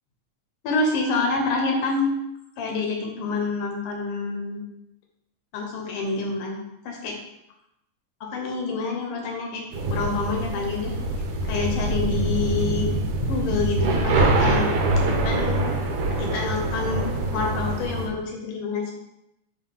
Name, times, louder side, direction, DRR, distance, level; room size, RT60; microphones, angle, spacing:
voice 1, 0.6-2.1 2.6-4.6 5.5-6.6 6.9-7.2 8.2-9.6 9.9-11.0 11.4-12.9 13.3-14.7 14.9-15.7 16.2-18.9, left 4 dB, 90° left, 1 dB, 2.7 m, -27 dB
sound 1, 9.7-18.1, right 2 dB, 70° right, 1.8 m, -24 dB
7.6 x 2.6 x 5.4 m, 0.84 s
omnidirectional pair, 3.7 m